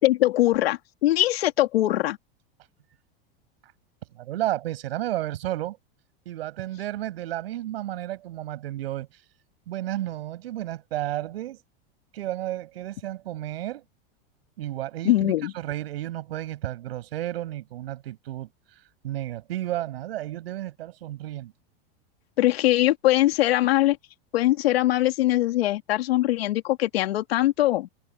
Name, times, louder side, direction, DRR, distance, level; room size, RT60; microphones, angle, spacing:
voice 1, 0.0-2.2 15.0-15.5 22.4-24.0 24.3-27.9, left 15 dB, 85° left, 3.1 m, -22 dB
voice 2, 4.1-5.8 6.2-9.1 9.7-11.6 12.1-13.8 14.6-18.5 19.0-21.5, right 14 dB, 85° right, 7.9 m, -32 dB
supercardioid pair, 135°, 30 cm